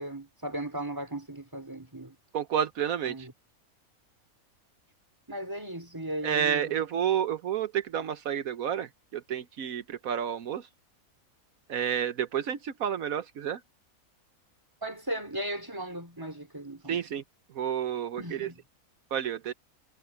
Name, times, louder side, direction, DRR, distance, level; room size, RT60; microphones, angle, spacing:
voice 1, 0.0-2.2 3.0-3.3 5.3-6.8 14.8-17.0 18.2-18.6, right 1 dB, 15° right, 4.2 m, -37 dB
voice 2, 2.3-3.3 6.2-10.7 11.7-13.6 16.9-17.2 17.5-18.5 19.1-19.5, right 9 dB, 80° right, 1.3 m, -30 dB
omnidirectional pair, 1.5 m